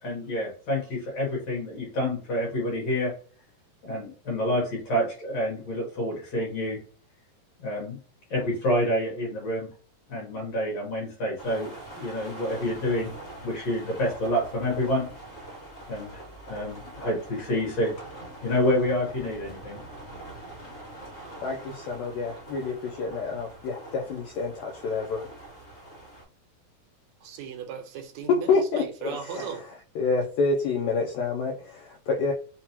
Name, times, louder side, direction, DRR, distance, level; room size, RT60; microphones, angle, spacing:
voice 1, 0.0-3.1 3.8-6.8 7.6-8.0 8.3-9.7 10.1-13.1 13.4-15.1 15.9-17.9 18.4-19.8, left 1 dB, 55° left, 2.2 m, -28 dB
sound 1, 11.4-26.2, right 1 dB, 35° left, 1.0 m, -44 dB
voice 2, 21.4-25.3 28.3-29.7 29.9-32.3, left 4 dB, 85° left, 1.6 m, -28 dB
voice 3, 27.2-29.6, right 7 dB, 75° right, 1.7 m, -37 dB
5.7 x 2.2 x 2.9 m
omnidirectional pair, 3.9 m